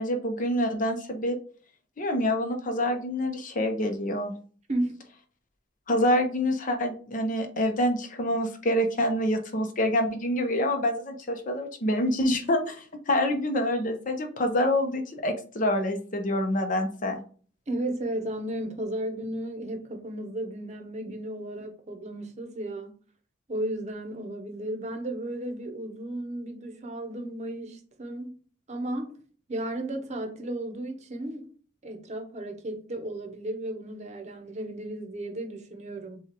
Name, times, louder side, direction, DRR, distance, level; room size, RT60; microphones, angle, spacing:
voice 1, 0.0-1.4 2.0-4.3 5.9-17.2, left 1 dB, 45° left, 0.8 m, -26 dB
voice 2, 17.7-22.9 23.5-28.3 28.7-29.2 29.5-31.5 31.8-36.2, right 1 dB, 40° right, 0.8 m, -34 dB
7.1 x 2.4 x 2.9 m
head